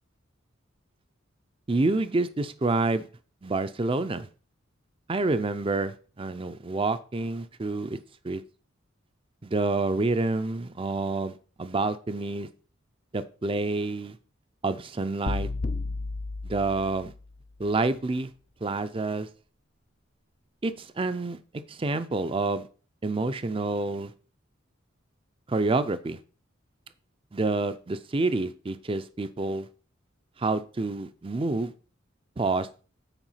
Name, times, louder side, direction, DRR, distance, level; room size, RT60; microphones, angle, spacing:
voice 1, 1.7-3.1 3.4-4.3 5.1-8.0 8.2-8.4 9.4-12.5 13.1-14.2 14.6-15.5 16.4-17.1 17.6-18.3 18.6-19.3 20.6-21.4 21.7-22.7 23.0-24.1 25.5-26.2 27.3-29.7 30.4-31.7 32.4-32.7, right 3 dB, 25° right, 12 dB, 0.5 m, -28 dB
sound 1, 15.3-17.4, left 3 dB, 40° left, 0.4 m, -32 dB
9.0 x 4.7 x 5.6 m, 0.39 s
head